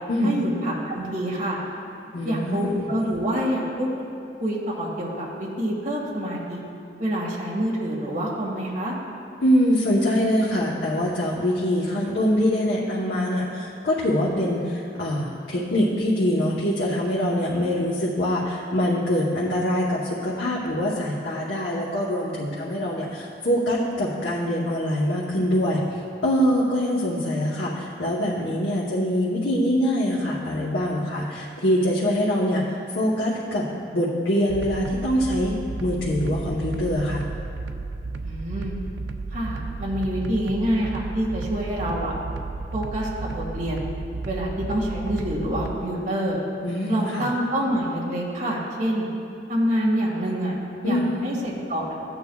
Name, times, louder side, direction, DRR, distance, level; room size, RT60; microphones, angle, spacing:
voice 1, 0.2-1.6 2.2-3.9 4.4-6.6 7.0-8.9 38.2-38.7 39.3-42.1 42.7-43.9 44.2-46.4 46.9-49.1 49.5-50.6 50.8-52.0, equal, 50° right, -5 dB, 1.9 m, -27 dB
voice 2, 2.1-2.9 9.4-35.5 35.8-37.2 46.6-47.3 50.8-51.3, equal, 90° left, -6 dB, 1.0 m, -24 dB
sound 1, 34.5-45.7, right 3 dB, 85° right, 0.4 m, -33 dB
14.5 x 8.8 x 2.3 m, 2.6 s
head